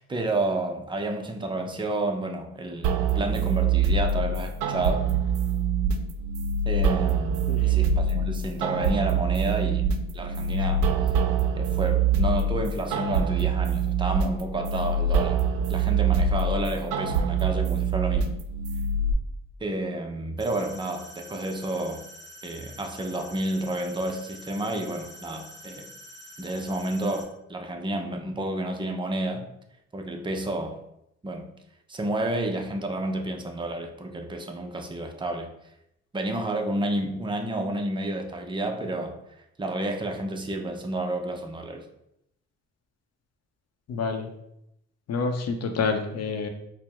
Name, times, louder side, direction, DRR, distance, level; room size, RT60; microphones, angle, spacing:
voice 1, 0.0-2.9 3.2-5.1 6.7-9.9 10.1-10.9 11.5-15.4 15.7-18.3 19.6-22.0 22.4-25.9 26.4-29.5 29.9-30.8 31.2-31.4 31.9-35.5 36.1-39.2 39.6-41.9, right 1 dB, 15° right, 4 dB, 0.5 m, -30 dB
sound 1, 2.8-19.1, right 5 dB, 70° right, 0.5 m, -25 dB
sound 2, 20.4-27.2, equal, 10° left, 1.0 m, -46 dB
voice 2, 43.9-44.3 45.1-46.5, left 4 dB, 55° left, 5 dB, 0.6 m, -28 dB
4.5 x 2.1 x 3.4 m, 0.79 s
cardioid pair, 90°, 30 cm